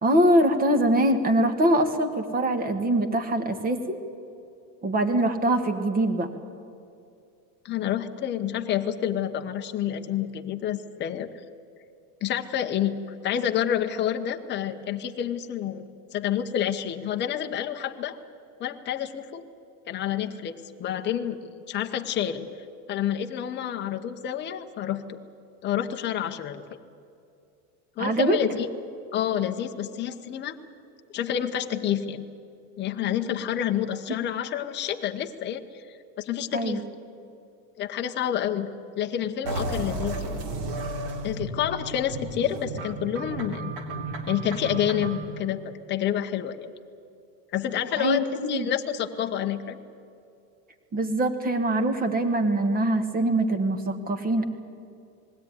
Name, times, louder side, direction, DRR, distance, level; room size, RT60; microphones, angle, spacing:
voice 1, 0.0-4.0 4.8-6.3 28.0-28.4 36.5-36.8 48.0-48.7 50.9-54.4, right 1 dB, 15° right, 8 dB, 1.5 m, -23 dB
voice 2, 7.6-11.3 12.2-13.0 13.2-18.2 18.6-19.4 19.9-22.5 22.9-25.2 25.6-26.6 28.0-28.7 29.1-30.6 31.1-32.3 32.8-36.8 37.8-38.7 39.0-40.4 41.2-43.7 44.3-45.6 45.9-46.7 47.5-49.8, left 10 dB, 20° left, 5 dB, 0.9 m, -28 dB
sound 1, 39.4-45.2, right 2 dB, 65° right, 3.2 m, -33 dB
21.0 x 16.5 x 9.6 m, 2.6 s
supercardioid pair, 155°, 50 cm